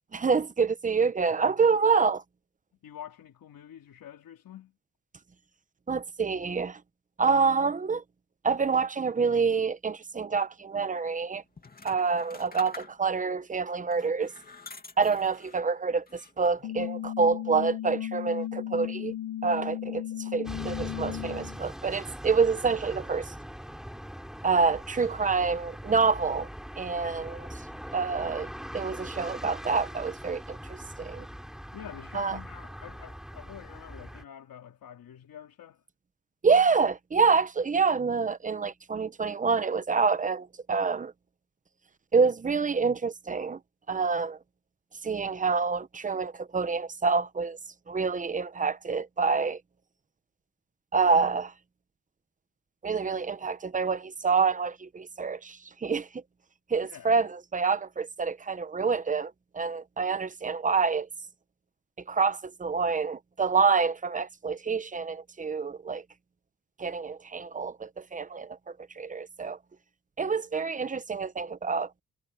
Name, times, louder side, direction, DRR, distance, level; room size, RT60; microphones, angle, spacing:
voice 1, 0.1-2.2 5.9-6.8 7.2-8.0 8.4-11.4 11.8-14.3 15.0-19.1 19.4-23.3 24.4-26.5 26.8-27.5 27.9-28.5 28.7-31.3 32.1-32.4 36.4-41.1 42.1-43.6 43.9-44.4 45.0-47.6 47.9-49.6 50.9-51.5 52.8-56.2 56.7-61.1 62.1-66.0 66.8-68.6 68.9-69.6 70.2-71.9, right 5 dB, 25° right, 0.8 m, -27 dB
voice 2, 2.8-4.7 31.7-35.8 56.8-57.1, left 10 dB, 75° left, 3.4 m, -47 dB
sound 1, 11.6-13.3 13.9-15.7 16.1-16.7, left 3 dB, 25° left, 2.6 m, -47 dB
sound 2, 16.6-21.6, left 12 dB, 55° left, 0.8 m, -35 dB
sound 3, 20.4-34.2, equal, ahead, 4.7 m, -41 dB
wide cardioid pair, 140°, 34 cm